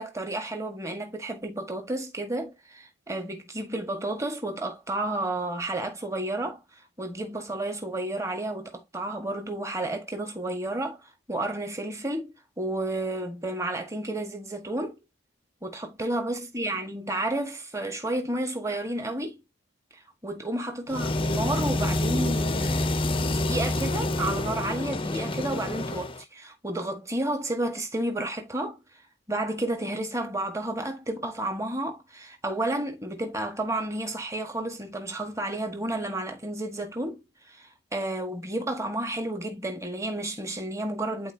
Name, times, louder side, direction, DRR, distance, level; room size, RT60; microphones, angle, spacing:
voice 1, 0.0-6.6 7.0-15.0 15.6-19.4 20.2-28.8 29.3-41.3, right 1 dB, 15° right, 1.5 m, -31 dB
sound 1, 20.9-26.2, left 2 dB, 25° left, 0.6 m, -27 dB
11.0 x 4.3 x 2.8 m
head